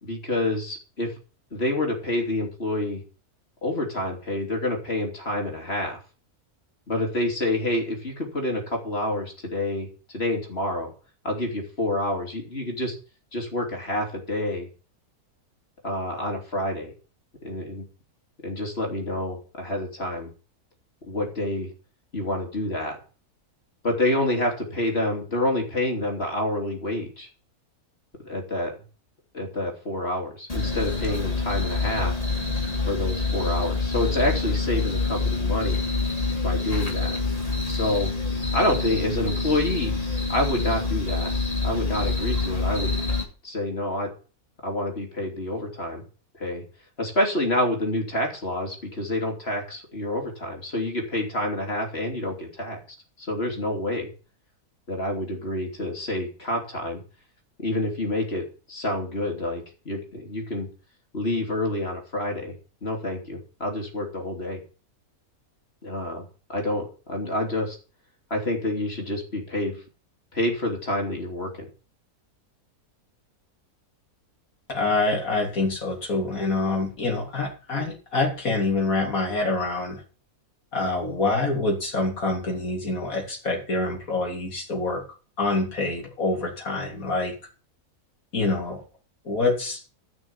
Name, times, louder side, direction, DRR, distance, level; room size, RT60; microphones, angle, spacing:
voice 1, 0.0-1.1 1.5-3.0 3.6-6.0 6.9-9.9 10.1-10.9 11.2-12.9 13.3-14.7 15.8-16.9 17.4-17.8 18.4-20.3 21.0-21.7 22.1-23.0 23.8-27.3 28.2-28.7 29.3-32.1 32.8-35.8 36.4-37.2 37.7-38.1 38.5-39.9 40.3-41.3 41.6-42.9 43.4-44.1 44.6-46.0 46.4-46.6 47.0-52.8 53.2-54.1 54.9-57.0 57.6-60.7 61.1-62.5 62.8-64.6 65.8-66.2 66.5-67.8 68.3-69.8 70.3-71.7, left 1 dB, 40° left, 2 dB, 3.3 m, -28 dB
sound 1, 30.5-43.2, left 3 dB, 25° left, 2.8 m, -26 dB
voice 2, 74.7-80.0 80.7-85.0 85.4-87.3 88.3-88.8 89.3-90.0, left 3 dB, 65° left, 0 dB, 3.8 m, -26 dB
14.0 x 6.1 x 7.1 m, 0.37 s
omnidirectional pair, 1.6 m